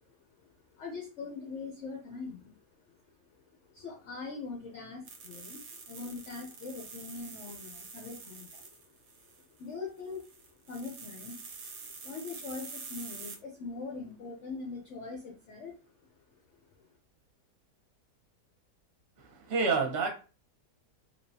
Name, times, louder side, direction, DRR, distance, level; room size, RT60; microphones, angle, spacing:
voice 1, 0.4-2.6 3.0-3.1 3.7-8.9 9.5-11.5 11.8-15.8 16.8-16.9, left 4 dB, 60° left, 0 dB, 0.8 m, -42 dB
sound 1, 5.0-9.6 10.0-13.4, right 4 dB, 80° right, 1.4 m, -46 dB
voice 2, 19.2-20.1, right 4 dB, 45° right, 1 dB, 1.1 m, -28 dB
3.5 x 2.9 x 2.7 m, 0.33 s
omnidirectional pair, 1.8 m